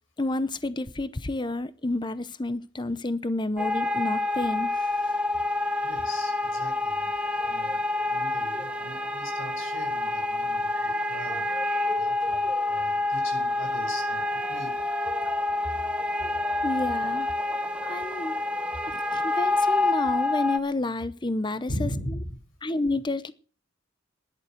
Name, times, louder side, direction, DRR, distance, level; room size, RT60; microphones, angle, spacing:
voice 1, 0.2-5.2 16.6-17.3 17.8-18.4 18.9-21.9 22.6-23.3, left 2 dB, 25° left, 0.8 m, -30 dB
sound 1, 3.6-20.6, left 2 dB, 5° right, 1.2 m, -27 dB
voice 2, 5.8-11.4 11.9-14.7 18.9-19.0 21.7-22.4, left 1 dB, 90° left, 6.4 m, -39 dB
13.0 x 11.0 x 7.8 m
head